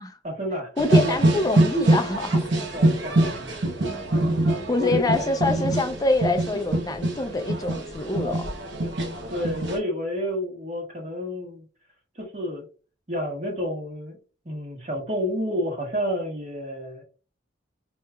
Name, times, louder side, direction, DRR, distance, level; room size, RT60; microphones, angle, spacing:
voice 1, 0.2-1.2 2.7-3.6 4.8-5.3 9.3-11.6 12.1-12.6 13.1-14.2 14.4-17.0, equal, 40° right, 1.4 m, -30 dB
voice 2, 0.8-2.5 4.7-8.5, left 2 dB, 20° left, 0.4 m, -25 dB
sound 1, 0.8-9.8, right 1 dB, 80° right, 1.0 m, -24 dB
4.9 x 2.8 x 2.2 m
head